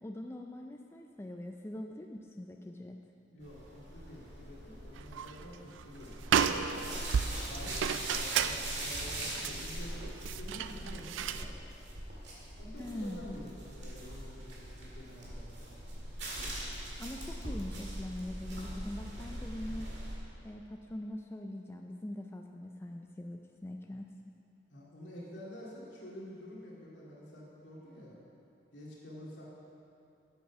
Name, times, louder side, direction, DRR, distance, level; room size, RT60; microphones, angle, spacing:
voice 1, 0.0-3.0 12.8-13.4 17.0-20.0 20.4-24.1, left 1 dB, 15° left, 2 dB, 0.3 m, -42 dB
voice 2, 3.3-6.8 7.3-11.5 12.6-15.8 24.7-28.2 28.7-29.4, left 1 dB, 70° left, -6 dB, 2.3 m, -49 dB
sound 1, 3.4-20.1, right 1 dB, 60° right, 2.0 m, -42 dB
sound 2, 5.0-5.4 5.8-5.9 6.2-11.5, right 7 dB, 80° right, 0.4 m, -33 dB
8.0 x 7.9 x 5.8 m, 2.6 s
head